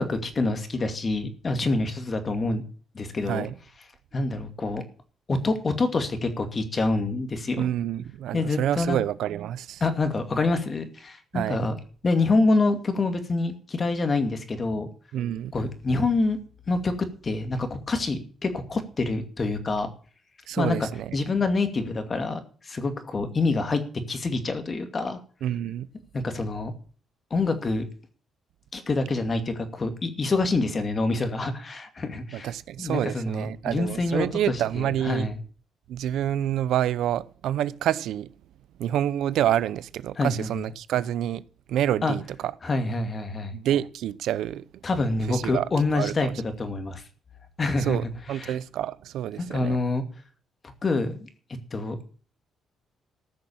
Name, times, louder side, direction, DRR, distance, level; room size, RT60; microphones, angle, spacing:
voice 1, 0.0-2.6 2.9-3.5 4.1-4.8 5.3-7.7 8.3-9.0 9.8-11.8 12.0-14.9 15.5-16.4 16.7-19.9 20.6-23.8 24.1-25.2 26.1-26.7 27.3-27.8 28.7-32.5 32.8-34.3 34.8-35.4 40.2-40.5 42.0-42.2 42.6-43.5 44.8-46.3 46.6-47.0 47.6-48.0 48.3-48.5 49.4-50.0 50.8-51.3 51.7-52.0, left 3 dB, 35° left, 2.5 m, -26 dB
voice 2, 7.6-9.8 11.3-11.7 15.1-15.5 20.5-21.2 25.4-25.9 32.3-35.3 35.9-38.3 38.8-41.4 41.7-42.5 43.5-44.6 45.3-46.4 47.8-49.8, right 11 dB, 80° right, 0.7 m, -28 dB
14.0 x 6.3 x 8.7 m
cardioid pair, 90°, 0 cm